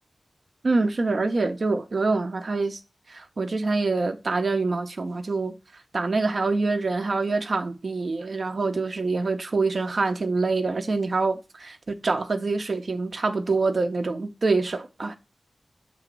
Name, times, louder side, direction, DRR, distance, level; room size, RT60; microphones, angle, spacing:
voice 1, 0.6-2.8 3.1-5.5 5.9-15.1, right 3 dB, 65° right, 0.6 m, -25 dB
6.8 x 2.9 x 5.9 m
cardioid pair, 45°, 0 cm